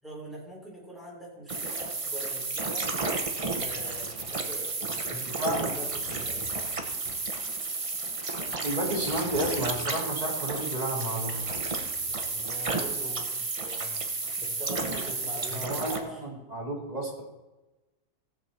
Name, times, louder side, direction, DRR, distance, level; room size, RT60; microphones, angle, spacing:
voice 1, 0.0-2.9 3.5-6.5 12.0-14.0 14.4-16.2, right 1 dB, ahead, -4 dB, 3.7 m, -42 dB
sound 1, 1.5-16.0, right 3 dB, 45° right, 0.4 m, -32 dB
Drawer open or close, 3.3-4.5 5.6-7.3 8.6-9.9 11.2-12.9, left 2 dB, 30° left, 2.7 m, -49 dB
voice 2, 5.1-5.6 8.6-11.6 15.5-17.2, right 1 dB, 20° right, -2 dB, 2.5 m, -32 dB
17.5 x 7.5 x 4.2 m, 1.1 s
omnidirectional pair, 2.2 m